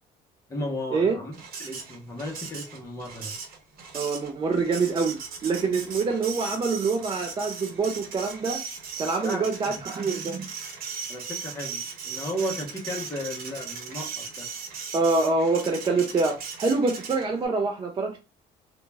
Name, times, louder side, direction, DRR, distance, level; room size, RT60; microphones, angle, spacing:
voice 1, 0.5-1.3 1.6-3.3 9.2-9.4 11.1-14.5, equal, 20° left, 0 dB, 0.7 m, -34 dB
Printer, 1.3-17.5, right 6 dB, 60° right, 0.9 m, -38 dB
voice 2, 3.9-8.6 9.0-10.5 14.9-18.2, right 4 dB, 30° right, 3 dB, 0.4 m, -25 dB
2.3 x 2.2 x 3.2 m, 0.30 s
cardioid pair, 110°, 17 cm